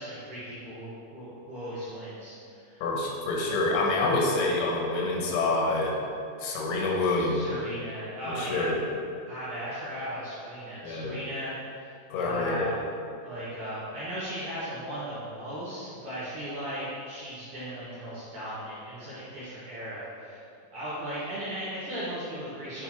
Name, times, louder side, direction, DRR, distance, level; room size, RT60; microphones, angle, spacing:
voice 1, 0.0-2.8 7.2-8.7 9.3-12.8 13.2-20.4 20.7-22.8, equal, 60° right, -11 dB, 2.1 m, -37 dB
voice 2, 2.8-6.0 6.4-7.5 8.3-8.8 10.8-11.2 12.1-12.7, left 2 dB, 90° left, -1 dB, 4.1 m, -27 dB
10.0 x 5.3 x 4.4 m, 2.5 s
omnidirectional pair, 6.0 m